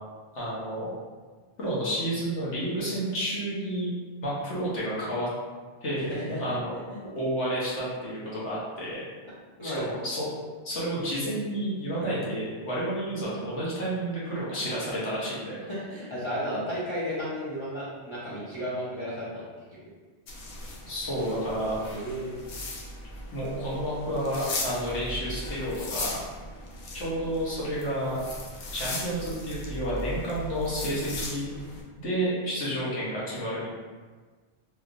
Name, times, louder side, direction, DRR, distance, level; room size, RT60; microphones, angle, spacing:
voice 1, 0.3-0.9 1.6-3.9 4.2-5.3 5.8-6.1 6.4-6.7 7.1-9.0 9.6-10.3 10.6-15.6 20.9-21.7 23.3-26.2 26.9-28.2 28.7-31.5 32.0-33.7, right 1 dB, 80° left, -8 dB, 1.4 m, -30 dB
voice 2, 6.1-6.4 6.9-7.0 9.6-9.9 12.0-12.1 15.7-19.4 21.9-22.4 30.8-31.0, equal, 30° left, -10 dB, 0.6 m, -33 dB
sound 1, 20.3-31.8, left 2 dB, 65° left, 0.8 m, -38 dB
3.2 x 2.9 x 2.5 m, 1.4 s
omnidirectional pair, 1.2 m